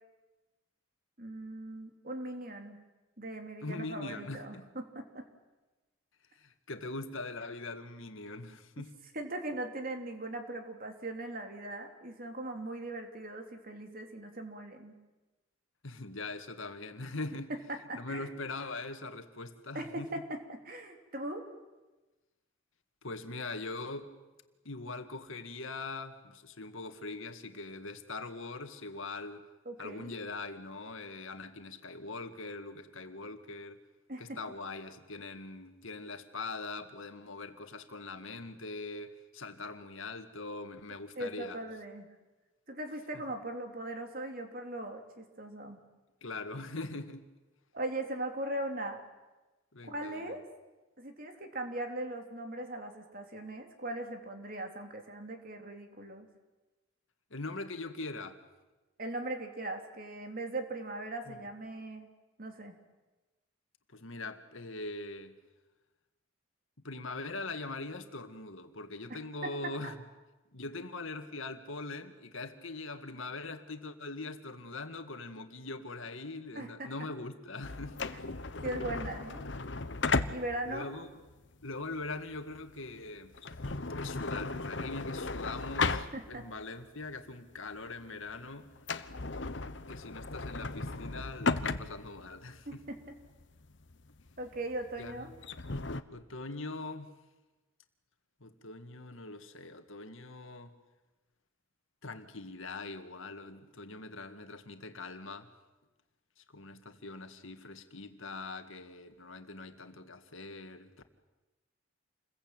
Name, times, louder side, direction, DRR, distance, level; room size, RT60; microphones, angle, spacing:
voice 1, 1.2-2.8 3.2-4.6 4.9-5.2 9.1-14.9 17.5-18.3 19.7-21.4 29.6-30.1 34.1-34.4 41.1-42.1 42.7-45.8 47.7-49.0 49.9-50.4 51.0-56.3 59.0-62.1 62.4-62.7 76.5-76.9 78.6-79.4 80.3-80.9 86.1-86.4 92.7-93.1 94.4-95.3, right 1 dB, 45° right, 3.3 m, -39 dB
voice 2, 3.6-4.7 6.3-9.0 15.8-17.5 17.9-20.1 23.0-24.1 24.6-29.4 29.8-33.8 34.2-41.6 43.1-43.2 46.2-47.2 49.7-50.3 57.3-58.4 61.3-61.4 63.9-65.4 66.8-70.0 70.5-78.1 80.7-81.2 81.6-83.4 84.0-88.7 89.9-92.8 95.0-95.3 96.1-97.1 98.4-100.7 102.0-105.5 106.4-111.0, left 3 dB, 75° left, 2.1 m, -42 dB
sound 1, 77.6-86.6 87.0-87.1 87.7-88.0 88.3-88.4 88.8-96.0, left 3 dB, 60° left, 1.1 m, -36 dB
28.5 x 22.0 x 9.0 m
head